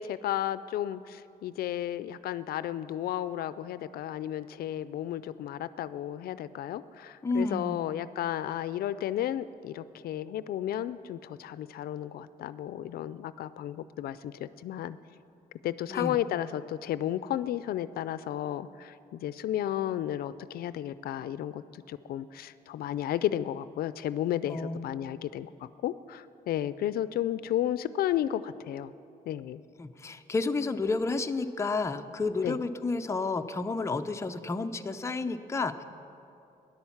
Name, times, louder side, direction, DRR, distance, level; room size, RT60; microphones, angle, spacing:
voice 1, 0.0-15.0 15.6-25.5 25.8-28.9 29.3-29.6 32.4-32.6, left 12 dB, 80° left, 15 dB, 0.4 m, -33 dB
voice 2, 7.2-7.8 15.9-16.2 24.4-24.9 29.8-35.8, left 3 dB, 20° left, 7 dB, 0.5 m, -31 dB
13.5 x 11.0 x 7.2 m, 2.7 s
cardioid pair, 125°, 15 cm